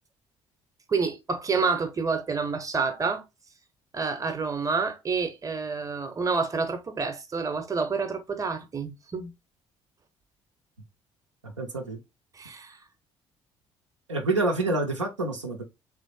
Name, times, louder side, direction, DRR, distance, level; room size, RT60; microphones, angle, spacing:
voice 1, 0.9-3.2 3.9-9.3 12.3-12.8, right 4 dB, 20° right, 0.7 m, -28 dB
voice 2, 11.4-12.0 14.1-15.6, right 2 dB, 85° right, 0.5 m, -27 dB
3.1 x 2.5 x 2.5 m
figure-of-eight pair, 50°, 15 cm